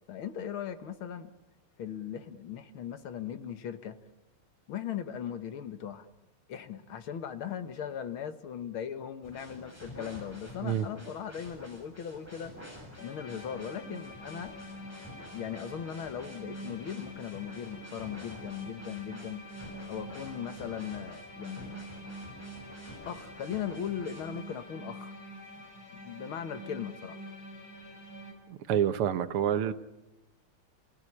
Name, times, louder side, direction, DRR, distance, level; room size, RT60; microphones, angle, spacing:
voice 1, 0.1-1.3 1.8-4.0 4.7-6.1 6.5-12.5 13.0-14.6 15.3-19.5 19.9-21.7 23.1-25.1 25.9-27.2, left 8 dB, 70° left, 10 dB, 2.1 m, -38 dB
sound 1, 9.2-24.4, equal, 5° left, 7.4 m, -50 dB
sound 2, 13.0-28.3, equal, 45° left, 4.7 m, -46 dB
voice 2, 28.5-29.7, right 9 dB, 80° right, 11 dB, 2.0 m, -28 dB
29.5 x 17.5 x 10.0 m, 1.0 s
omnidirectional pair, 2.4 m